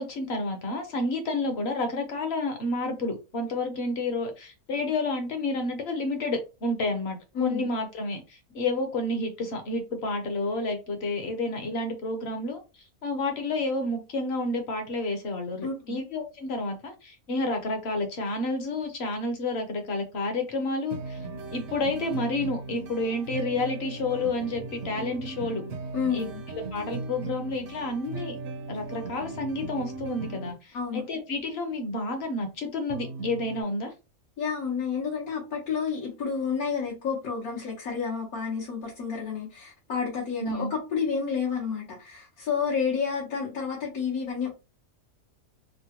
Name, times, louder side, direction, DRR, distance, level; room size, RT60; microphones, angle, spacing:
voice 1, 0.0-12.6 13.0-21.2 21.5-25.6 26.1-26.2 26.5-28.4 28.7-33.9 40.4-40.7, left 2 dB, 55° left, 0.9 m, -30 dB
voice 2, 7.3-7.7 15.6-16.0 25.9-26.4 30.7-31.0 34.4-44.5, left 6 dB, 85° left, 1.5 m, -30 dB
sound 1, 20.9-30.5 32.9-33.6, right 3 dB, 65° right, 0.9 m, -37 dB
3.6 x 2.1 x 2.8 m
omnidirectional pair, 1.5 m